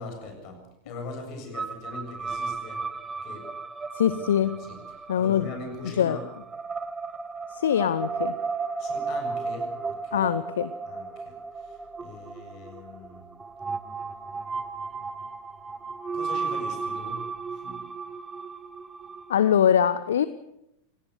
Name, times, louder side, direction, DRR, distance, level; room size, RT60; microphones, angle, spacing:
voice 1, 0.0-2.8 3.2-3.5 4.2-4.3 4.6-6.2 8.8-10.3 10.9-13.3 16.1-17.8, left 3 dB, 40° left, 5 dB, 7.4 m, -41 dB
sound 1, 1.5-19.7, right 4 dB, 15° right, 1.1 m, -34 dB
voice 2, 3.9-4.5 5.1-5.5 6.0-6.2 7.5-8.4 10.1-10.7 19.3-20.3, left 9 dB, 65° left, 16 dB, 0.7 m, -23 dB
27.0 x 18.0 x 6.7 m, 0.83 s
figure-of-eight pair, 90°, 0 cm